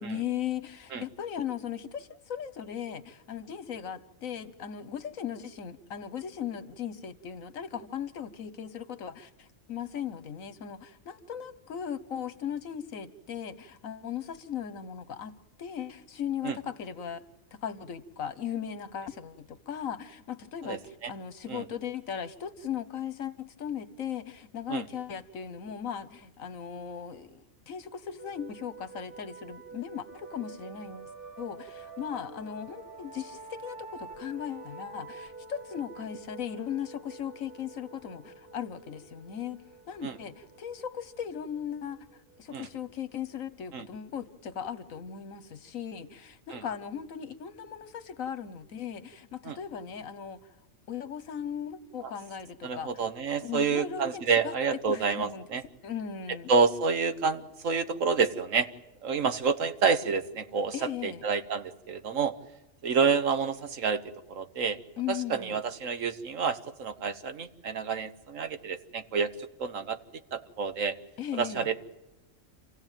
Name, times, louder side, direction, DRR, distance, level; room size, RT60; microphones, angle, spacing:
voice 1, 0.0-17.2 17.5-31.1 31.4-39.6 39.9-42.1 42.4-50.4 50.9-52.9 53.4-54.5 54.9-55.4 55.8-56.5 60.7-61.2 65.0-65.6 71.2-71.7, left 8 dB, 75° left, 14 dB, 1.5 m, -38 dB
voice 2, 20.6-21.1 21.5-21.6 24.7-24.8 40.0-40.2 42.5-42.7 43.7-43.9 46.5-46.6 49.4-49.6 52.0-52.1 52.6-55.6 56.5-58.7 59.0-62.3 62.8-64.0 64.3-64.8 65.1-69.3 69.6-70.0 70.3-71.0 71.3-71.8, right 5 dB, 70° right, 10 dB, 1.6 m, -28 dB
sound 1, 28.2-43.5, right 3 dB, 40° right, 2.2 m, -48 dB
27.5 x 16.0 x 9.1 m, 0.98 s
omnidirectional pair, 1.4 m